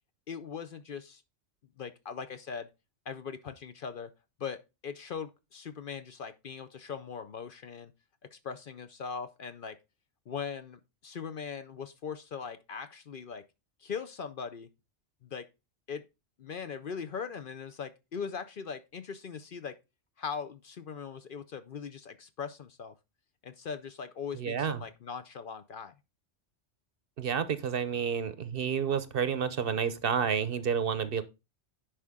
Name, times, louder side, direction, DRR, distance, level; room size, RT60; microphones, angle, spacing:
voice 1, 0.3-1.2 1.8-2.7 3.1-4.1 4.4-7.9 8.2-9.8 10.3-13.4 13.8-14.7 15.2-15.5 15.9-16.1 16.4-19.8 20.2-22.9 23.4-25.9, left 6 dB, 55° left, 0.7 m, -40 dB
voice 2, 24.4-24.8 27.2-31.2, right 7 dB, 60° right, 0.8 m, -30 dB
10.0 x 5.0 x 3.5 m
omnidirectional pair, 1.2 m